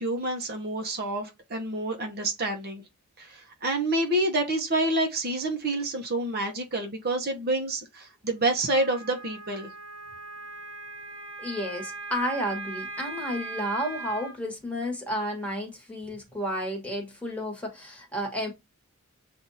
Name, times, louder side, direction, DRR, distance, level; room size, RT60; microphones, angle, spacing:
voice 1, 0.0-2.8 3.2-9.7, right 1 dB, 45° right, 0.9 m, -28 dB
Wind instrument woodwind instrument, 8.7-14.4, right 4 dB, 70° right, 1.2 m, -39 dB
voice 2, 11.4-18.5, equal, 5° left, 1.4 m, -32 dB
7.4 x 2.6 x 2.7 m
head